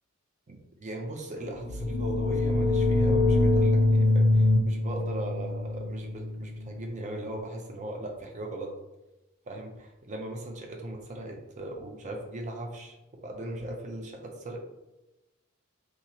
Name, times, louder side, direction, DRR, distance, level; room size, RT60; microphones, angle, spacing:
voice 1, 0.5-8.7 9.5-13.0 13.2-14.6, right 1 dB, 35° right, 2 dB, 0.5 m, -38 dB
sound 1, 1.6-7.2, left 2 dB, 85° left, 0.4 m, -24 dB
2.9 x 2.4 x 2.8 m, 0.99 s
head